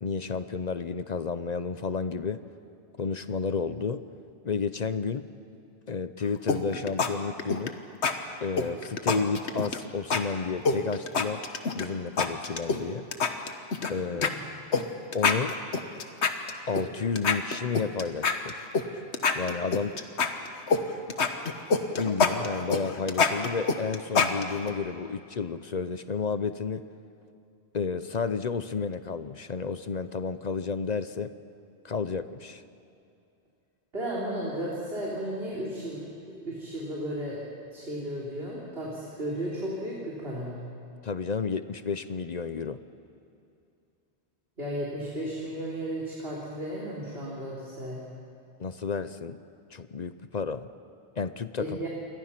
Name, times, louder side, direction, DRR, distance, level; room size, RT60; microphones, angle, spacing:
voice 1, 0.0-2.4 3.0-4.0 4.4-5.3 5.9-7.8 8.4-11.4 11.8-13.1 13.9-14.3 15.1-15.5 16.7-18.6 19.3-20.0 22.0-26.8 27.7-31.3 31.8-32.6 41.0-42.8 48.6-49.4 49.7-50.7 51.2-51.9, left 5 dB, 45° left, 12 dB, 0.7 m, -31 dB
sound 1, 6.5-7.1 7.4-7.7 8.0-8.1 8.6-9.8 10.1-10.2 10.7-11.9 12.2-12.8 13.1-13.9 14.2-14.3 14.7-14.8 15.1-16.8 17.2-18.9 19.1-20.8 21.1-24.7, left 5 dB, 85° left, 1.5 m, -25 dB
voice 2, 14.1-14.4 33.9-36.0 36.4-37.4 37.7-40.6 44.6-48.0 51.6-51.9, right 1 dB, 65° right, -6 dB, 4.0 m, -34 dB
28.0 x 23.5 x 5.9 m, 2.6 s
omnidirectional pair, 1.1 m